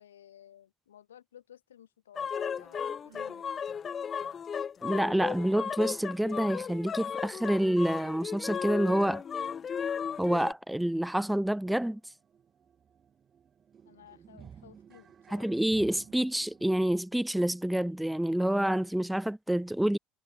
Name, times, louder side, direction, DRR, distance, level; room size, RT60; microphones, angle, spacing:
voice 1, 0.0-3.6 13.8-15.5, left 10 dB, 80° left, 2.8 m, -55 dB
sound 1, 2.2-10.5, left 7 dB, 35° left, 1.5 m, -35 dB
Sigh, 2.9-3.6, right 14 dB, 75° right, 4.1 m, -57 dB
voice 2, 4.8-9.2 10.2-12.0 15.3-20.0, right 1 dB, 5° right, 0.3 m, -28 dB
sound 2, 10.1-10.2 10.6-10.7 11.0-17.0, right 7 dB, 35° right, 2.3 m, -55 dB
hypercardioid pair, 70°, 0 cm